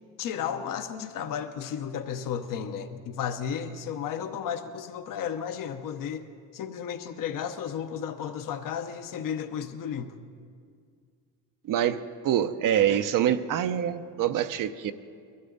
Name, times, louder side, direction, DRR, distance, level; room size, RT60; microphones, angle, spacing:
voice 1, 0.2-6.2 6.5-10.1, left 8 dB, 55° left, 8 dB, 1.0 m, -33 dB
voice 2, 11.7-14.9, right 10 dB, 60° right, 11 dB, 0.8 m, -25 dB
21.5 x 13.0 x 4.0 m, 2.2 s
supercardioid pair, 90°, 38 cm